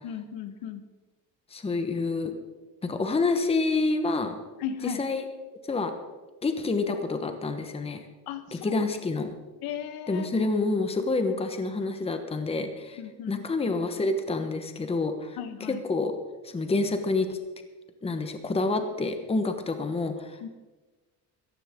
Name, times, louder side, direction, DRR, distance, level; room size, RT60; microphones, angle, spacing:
voice 1, 0.0-0.8 4.6-5.0 8.3-8.7 9.6-10.5 13.0-13.4 15.4-15.8 20.4-20.5, left 9 dB, 90° left, 9 dB, 1.4 m, -36 dB
voice 2, 1.5-2.3 2.8-4.4 4.8-5.2 5.7-5.9 6.4-8.0 8.5-9.3 10.1-13.0 13.3-16.1 16.4-17.4 18.0-20.4, left 3 dB, 15° left, 7 dB, 1.1 m, -28 dB
16.5 x 14.0 x 3.7 m, 1.2 s
cardioid pair, 140°, 36 cm